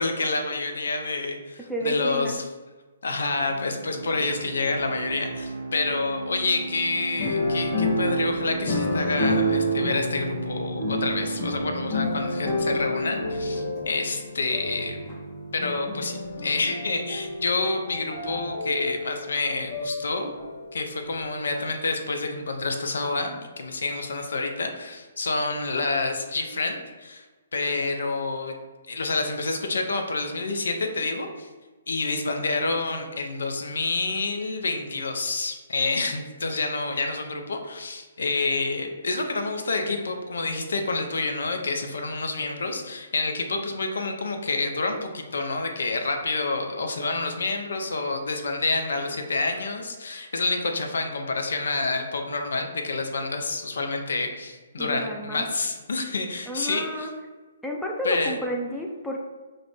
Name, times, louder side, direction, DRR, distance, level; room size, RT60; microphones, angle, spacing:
voice 1, 0.0-2.4 3.0-15.0 15.5-20.3 20.7-27.2 27.5-28.5 28.9-31.5 31.9-57.1 58.0-58.4, left 3 dB, 75° left, 4 dB, 0.4 m, -28 dB
voice 2, 1.7-2.5 54.8-55.4 56.5-57.1 57.6-59.2, equal, ahead, -1 dB, 0.3 m, -31 dB
sound 1, 3.5-14.9, right 3 dB, 75° right, 0.3 m, -37 dB
sound 2, 7.2-20.8 21.1-21.2, equal, 30° left, 0.7 m, -29 dB
2.4 x 2.0 x 3.4 m, 1.3 s
hypercardioid pair, 135°, 0 cm